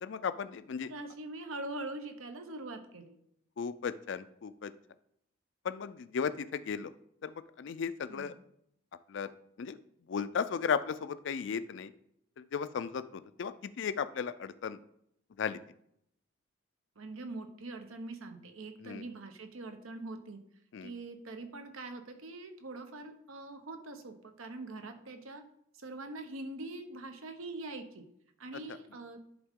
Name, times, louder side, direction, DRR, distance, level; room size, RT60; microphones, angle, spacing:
voice 1, 0.0-0.9 3.6-4.7 5.6-6.9 7.2-8.3 9.1-9.3 9.6-9.8 10.1-11.9 12.4-14.8 15.4-15.6 18.8-19.0 20.7-20.9 28.7-28.8, left 6 dB, 55° left, 13 dB, 0.3 m, -35 dB
voice 2, 0.8-3.2 8.1-8.3 17.0-20.4 20.8-25.4 25.7-28.1 28.4-29.2, right 2 dB, 75° right, 7 dB, 0.8 m, -43 dB
10.5 x 3.7 x 3.6 m, 0.74 s
head